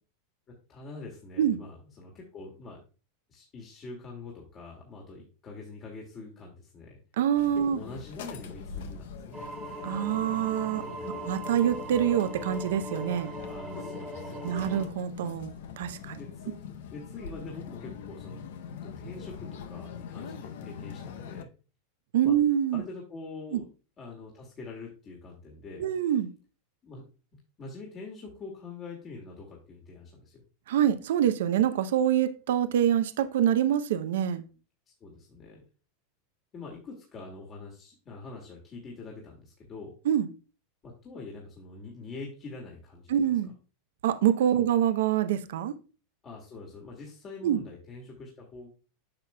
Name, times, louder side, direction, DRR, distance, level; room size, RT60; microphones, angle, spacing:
voice 1, 0.7-2.8 3.3-7.0 7.5-9.4 10.8-11.3 13.4-14.7 16.2-16.6 16.9-18.5 18.8-21.5 22.2-22.3 22.7-23.7 24.0-25.9 26.8-27.0 27.6-30.4 35.0-35.6 36.5-39.9 40.8-43.3 44.5-44.7 46.2-48.7, left 3 dB, 35° left, 2.0 m, -44 dB
voice 2, 7.2-7.8 9.8-10.8 11.3-13.3 14.4-16.2 22.1-22.8 25.8-26.3 30.7-34.4 40.1-40.3 43.1-43.5 44.0-45.8 47.4-47.6, right 10 dB, 75° right, 0.6 m, -25 dB
sound 1, 7.3-21.4, left 7 dB, 75° left, 0.7 m, -43 dB
sound 2, 9.3-14.9, right 1 dB, 15° right, 1.3 m, -39 dB
8.7 x 6.0 x 2.2 m
hypercardioid pair, 110°, 0 cm